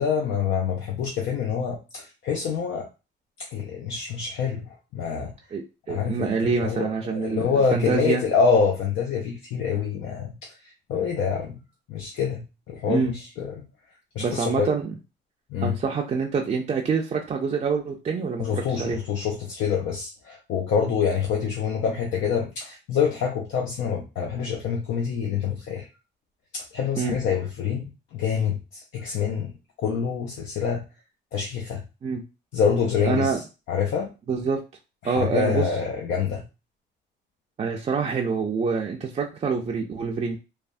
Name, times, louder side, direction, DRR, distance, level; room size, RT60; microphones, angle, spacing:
voice 1, 0.0-2.9 3.4-4.6 4.9-5.3 5.9-10.3 10.6-11.5 11.9-13.6 14.2-14.7 15.5-15.7 18.4-25.9 26.5-29.5 29.8-30.8 31.3-31.8 32.5-33.3 33.7-34.1 35.0-36.4, left 6 dB, 75° left, 1 dB, 0.5 m, -26 dB
voice 2, 5.9-8.2 12.9-13.1 14.2-14.9 15.6-19.0 27.0-27.2 32.0-32.2 33.0-33.4 34.3-34.6 35.0-35.7 37.6-40.4, right 5 dB, 35° right, 1 dB, 0.4 m, -26 dB
3.2 x 2.1 x 2.5 m, 0.29 s
cardioid pair, 90°, 20 cm